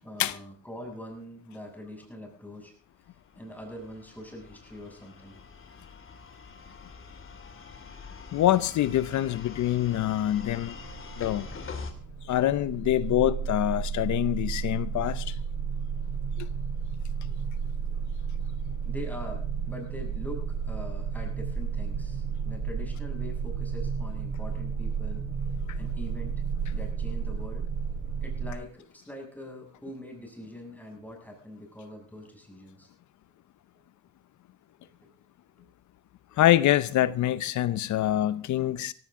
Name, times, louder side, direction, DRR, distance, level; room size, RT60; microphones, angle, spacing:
voice 1, 0.0-2.7 3.4-5.4 7.0-7.1 17.9-18.0 18.9-25.3 25.7-26.4 26.7-27.7 28.2-32.9 34.8-34.9 35.6-35.7, left 1 dB, 5° left, 7.2 m, -43 dB
sound 1, 3.1-11.9, left 5 dB, 45° left, 2.8 m, -44 dB
voice 2, 8.3-10.7 11.2-11.5 12.3-15.4 16.4-16.5 25.7-25.8 36.4-38.9, left 13 dB, 70° left, 0.8 m, -25 dB
sound 2, 10.3-28.5, right 6 dB, 75° right, 6.1 m, -32 dB
17.0 x 16.5 x 3.8 m
cardioid pair, 90°, 30 cm